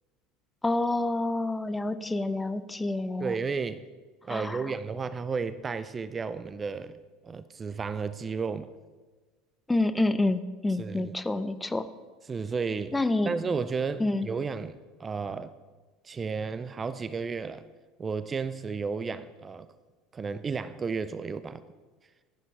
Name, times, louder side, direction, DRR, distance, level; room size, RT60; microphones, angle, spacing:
voice 1, 0.6-3.3 4.3-4.6 9.7-11.9 12.9-13.3 14.0-14.3, left 2 dB, 10° left, 0.7 m, -28 dB
voice 2, 3.2-3.8 4.2-7.0 7.2-8.7 10.8-11.2 12.3-13.0 13.2-15.5 16.0-17.7 18.0-19.7 20.1-21.6, right 5 dB, 30° right, 0.5 m, -33 dB
11.5 x 10.5 x 4.9 m
hypercardioid pair, 75°, 0 cm